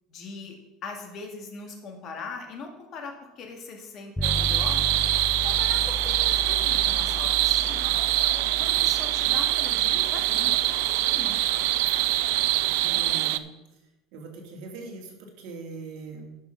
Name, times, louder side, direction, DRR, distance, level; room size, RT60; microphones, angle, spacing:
voice 1, 0.1-0.6 0.8-4.8 5.4-8.0 8.5-11.4, left 4 dB, 35° left, 3 dB, 2.0 m, -40 dB
sound 1, 4.2-13.1, left 2 dB, 5° left, 0.4 m, -36 dB
sound 2, 4.2-13.4, right 17 dB, 75° right, 0.4 m, -24 dB
voice 2, 12.8-13.5 14.1-16.4, right 3 dB, 60° right, 0 dB, 2.6 m, -41 dB
11.5 x 6.1 x 5.8 m, 0.98 s
cardioid pair, 160°, 0 cm